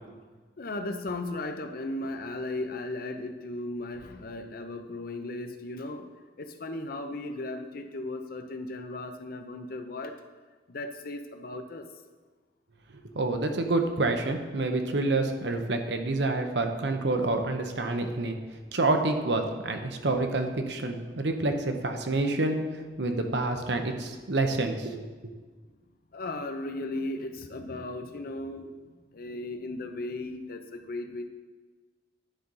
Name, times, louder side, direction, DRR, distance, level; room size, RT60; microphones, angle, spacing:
voice 1, 0.6-6.1 6.4-10.2 10.7-11.8 26.1-31.3, left 2 dB, 55° left, 7 dB, 0.7 m, -36 dB
voice 2, 13.1-18.4 18.7-25.3, right 2 dB, 80° right, 5 dB, 0.9 m, -28 dB
10.0 x 3.9 x 5.5 m, 1.4 s
head